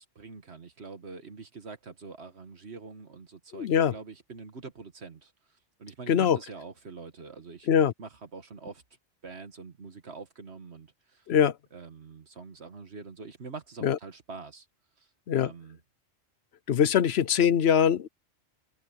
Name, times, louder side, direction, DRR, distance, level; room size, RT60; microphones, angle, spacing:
voice 1, 0.0-5.3 5.8-7.7 8.0-8.8 9.2-11.3 11.7-14.7 15.0-15.1 15.4-15.8, right 4 dB, 60° right, 1.8 m, -45 dB
voice 2, 3.5-4.0 6.1-6.4 7.7-7.9 11.3-11.6 13.8-14.0 15.3-15.5 16.7-18.1, left 8 dB, 60° left, 0.9 m, -22 dB
open air
omnidirectional pair, 1.3 m